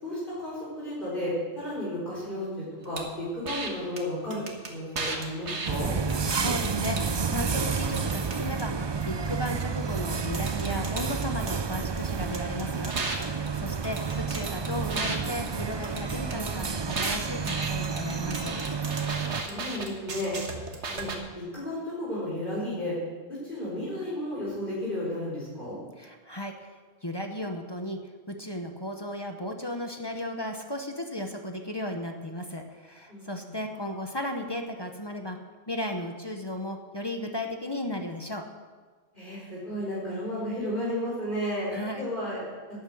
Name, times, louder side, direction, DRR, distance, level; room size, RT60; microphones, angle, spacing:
voice 1, 0.0-5.9 13.6-14.0 19.1-20.3 20.9-23.0 23.3-25.8 33.1-33.5 39.1-42.4, left 1 dB, 50° left, -8 dB, 4.7 m, -33 dB
sound 1, 3.0-3.1 3.5-3.7 4.0-4.1 4.3-5.7 6.1-7.1 7.5-8.6 10.0-10.1 10.3-12.0 12.3-15.2 15.5-21.2, right 3 dB, 80° right, 1.8 m, -35 dB
sound 2, 5.7-19.4, right 5 dB, 40° right, 0.4 m, -30 dB
voice 2, 6.4-18.5 26.0-28.0 28.3-35.4 35.7-38.4 41.7-42.0, left 1 dB, 25° left, 4 dB, 1.0 m, -35 dB
12.0 x 8.8 x 7.8 m, 1.4 s
omnidirectional pair, 1.1 m